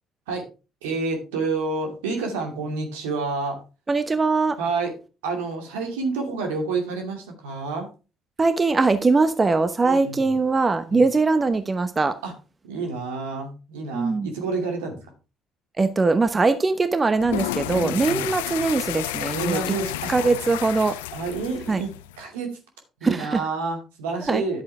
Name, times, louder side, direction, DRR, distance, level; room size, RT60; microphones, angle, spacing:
voice 1, 0.8-3.6 4.6-5.0 5.2-7.9 9.8-10.2 10.9-11.1 12.2-12.3 12.6-15.0 17.7-18.3 19.3-20.1 21.1-21.9 22.2-22.5 23.0-24.6, right 4 dB, 80° right, 2.5 m, -29 dB
voice 2, 3.9-4.6 8.4-12.2 13.9-14.3 15.8-19.6 20.1-20.9 21.7-21.8 23.0-23.4 24.3-24.4, right 3 dB, 30° right, 1.0 m, -21 dB
sound 1, 17.2-22.2, left 16 dB, 80° left, 0.4 m, -31 dB
10.5 x 7.7 x 3.5 m
hypercardioid pair, 50°, 0 cm